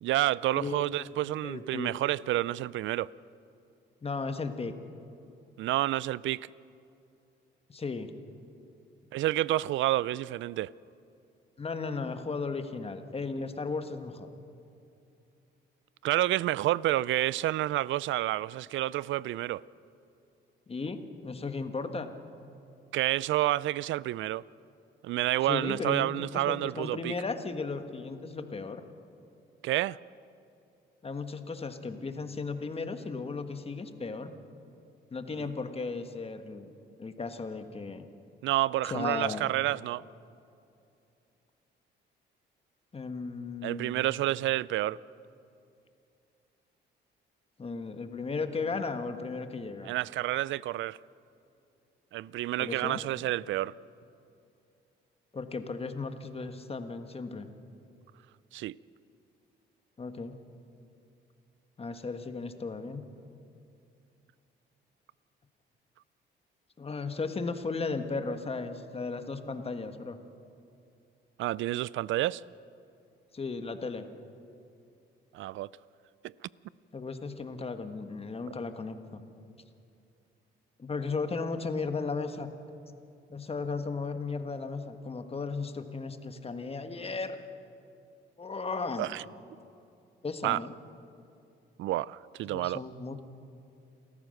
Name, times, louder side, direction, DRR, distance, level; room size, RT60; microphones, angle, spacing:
voice 1, 0.0-3.1 5.6-6.5 9.1-10.7 16.0-19.6 22.9-24.4 25.0-27.1 29.6-30.0 35.4-35.5 38.4-40.0 43.6-45.0 49.8-51.0 52.1-53.7 58.5-58.8 71.4-72.4 75.3-75.7 76.2-76.3 89.0-89.2 90.4-90.6 91.8-92.8, right 15 dB, 75° right, 0.4 m, -29 dB
voice 2, 1.4-1.9 4.0-4.8 7.7-8.1 11.6-14.3 20.7-22.1 25.5-28.8 31.0-34.3 35.1-36.7 37.0-38.1 38.8-39.4 42.9-44.1 47.6-49.9 52.6-53.0 55.3-57.5 60.0-60.4 61.8-63.1 66.8-70.2 73.3-74.1 76.9-79.2 80.8-82.5 83.3-87.4 88.4-89.1 90.2-90.7 92.5-93.2, left 4 dB, 30° left, 1.5 m, -35 dB
28.5 x 14.0 x 6.6 m
cardioid pair, 90°, 20 cm